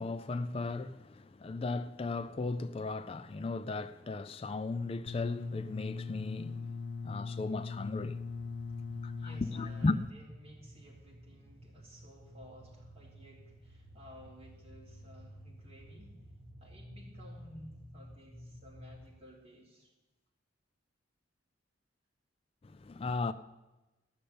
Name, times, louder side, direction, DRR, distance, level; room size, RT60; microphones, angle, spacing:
voice 1, 0.0-6.7 7.0-8.2 9.0-10.0 22.6-23.3, left 3 dB, 30° left, 0.3 m, -36 dB
sound 1, 5.1-10.1, left 4 dB, 65° left, 0.7 m, -40 dB
sound 2, 7.5-19.1, equal, 10° left, 3.5 m, -53 dB
voice 2, 8.9-16.2 16.6-19.9, equal, 30° right, 3.5 m, -55 dB
13.0 x 6.5 x 8.6 m
head